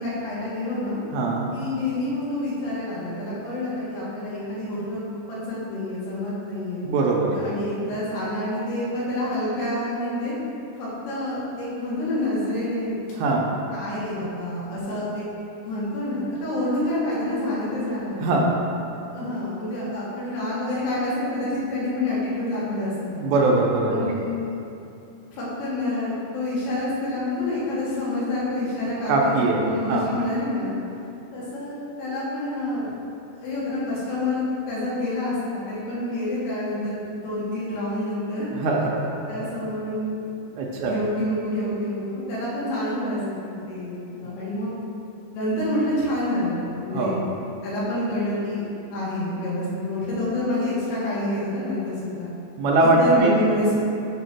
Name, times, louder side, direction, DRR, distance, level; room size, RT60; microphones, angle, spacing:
voice 1, 0.0-1.0 1.5-6.8 7.3-10.3 10.8-13.0 13.7-15.2 15.6-18.2 19.1-23.2 23.9-24.5 25.3-30.7 31.3-33.0 33.4-38.5 39.3-40.2 40.7-44.7 45.3-47.2 47.6-52.3 52.8-53.7, left 1 dB, 90° left, -8 dB, 3.6 m, -28 dB
voice 2, 1.1-1.5 6.8-7.4 13.2-13.5 18.2-18.6 23.2-24.1 29.1-29.6 29.9-30.1 38.5-39.1 40.6-41.0 46.9-47.2 52.6-53.3, right 2 dB, 80° right, -1 dB, 2.3 m, -21 dB
7.1 x 3.0 x 5.8 m, 2.7 s
omnidirectional pair, 4.6 m